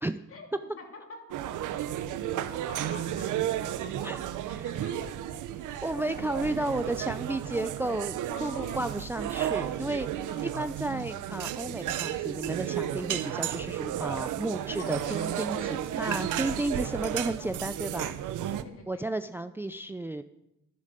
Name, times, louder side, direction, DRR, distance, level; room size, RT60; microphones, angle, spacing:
voice 1, 0.3-1.6 2.1-4.1 4.4-6.1 6.4-6.7 8.3-8.9 10.2-10.6 14.7-17.1 18.4-19.1, left 3 dB, 45° left, 3 dB, 2.9 m, -48 dB
sound 1, 1.3-18.6, right 11 dB, 80° right, 0.8 m, -33 dB
voice 2, 4.0-4.7 5.8-18.4 18.9-20.2, right 2 dB, 5° right, 11 dB, 0.5 m, -33 dB
11.5 x 11.0 x 6.7 m, 0.91 s
cardioid pair, 90°, 30 cm